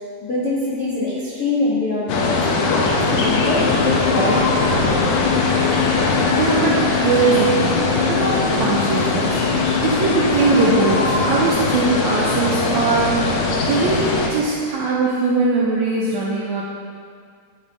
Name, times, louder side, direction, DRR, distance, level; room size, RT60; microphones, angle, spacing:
voice 1, 0.2-4.9, left 2 dB, 55° left, -10 dB, 1.0 m, -24 dB
sound 1, 2.1-14.3, left 3 dB, 70° left, 1.8 m, -20 dB
sound 2, 3.2-12.0, left 11 dB, 90° left, 1.4 m, -28 dB
voice 2, 6.3-13.3 13.7-16.6, right 4 dB, 75° right, -5 dB, 1.7 m, -21 dB
11.0 x 4.2 x 5.0 m, 2.2 s
omnidirectional pair, 4.1 m